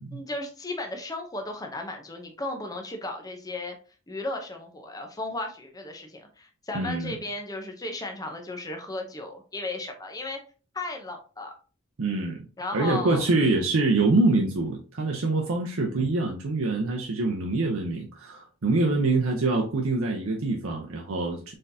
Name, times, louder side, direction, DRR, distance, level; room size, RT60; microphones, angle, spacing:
voice 1, 0.1-3.8 4.1-10.4 10.7-11.5 12.6-13.3, left 2 dB, 20° left, 3 dB, 0.6 m, -35 dB
voice 2, 6.7-7.1 12.0-12.4 12.7-21.5, right 2 dB, 85° right, 0 dB, 0.7 m, -25 dB
4.2 x 3.7 x 2.7 m, 0.37 s
head